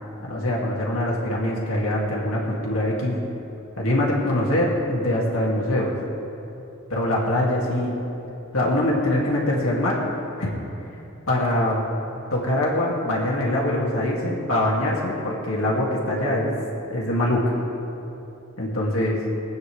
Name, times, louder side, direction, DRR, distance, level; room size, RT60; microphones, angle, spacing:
voice 1, 0.2-3.2 3.8-6.0 6.9-8.0 8.5-10.0 10.4-10.5 11.3-11.8 12.3-16.5 16.9-17.5 18.6-19.2, left 1 dB, 90° left, -4 dB, 2.2 m, -23 dB
23.5 x 9.1 x 3.3 m, 2.9 s
head